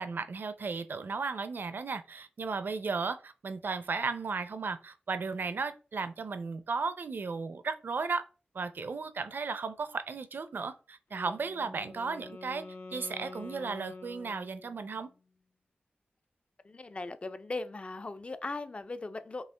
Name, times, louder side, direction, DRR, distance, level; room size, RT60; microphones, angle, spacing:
voice 1, 0.0-8.2 8.5-12.6 12.9-15.1, right 4 dB, 65° right, 0.5 m, -35 dB
Wind instrument woodwind instrument, 11.1-15.1, left 3 dB, 85° left, 1.0 m, -47 dB
voice 2, 16.6-19.4, left 3 dB, 35° left, 0.4 m, -38 dB
5.5 x 2.5 x 3.3 m
wide cardioid pair, 110°, 4 cm